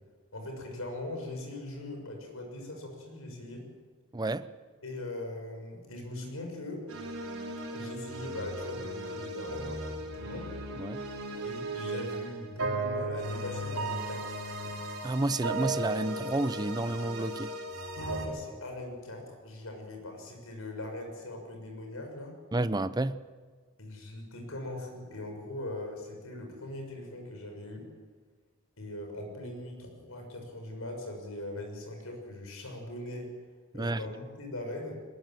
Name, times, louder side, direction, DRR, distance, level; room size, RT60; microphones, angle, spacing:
voice 1, 0.3-3.6 4.8-6.8 7.7-10.5 11.4-14.7 18.0-22.3 23.8-27.9 28.8-33.3 33.7-35.0, left 1 dB, 80° left, 6.6 m, -40 dB
voice 2, 4.1-4.5 10.8-11.0 15.0-17.5 22.5-23.2 33.7-34.0, right 2 dB, 20° right, 0.6 m, -30 dB
Hope springs, 6.9-18.3, right 2 dB, 90° right, 4.8 m, -36 dB
21.5 x 20.5 x 7.8 m
head